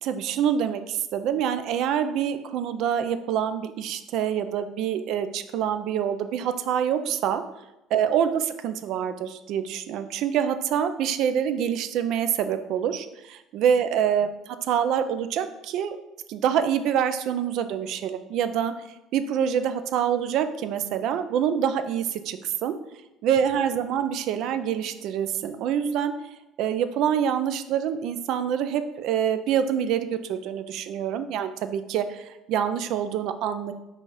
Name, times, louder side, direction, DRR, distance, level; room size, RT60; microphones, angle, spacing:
voice 1, 0.0-7.4 7.9-16.0 16.3-18.7 19.1-22.8 23.2-26.1 26.6-33.7, right 8 dB, 65° right, 10 dB, 0.3 m, -26 dB
4.1 x 2.3 x 4.7 m, 0.92 s
cardioid pair, 130°, 0 cm